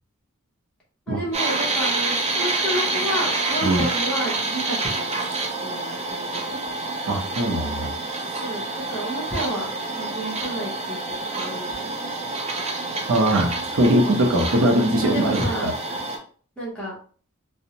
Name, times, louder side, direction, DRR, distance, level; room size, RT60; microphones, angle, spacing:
voice 1, 1.1-5.1 5.6-6.6 8.4-11.9 15.0-15.7 16.6-16.9, right 1 dB, 5° left, -7 dB, 0.8 m, -30 dB
sound 1, 1.3-16.2, right 2 dB, 30° right, 0.4 m, -27 dB
voice 2, 7.1-7.9 13.1-15.7, right 1 dB, 80° right, 3 dB, 0.6 m, -21 dB
2.5 x 2.0 x 2.8 m, 0.43 s
head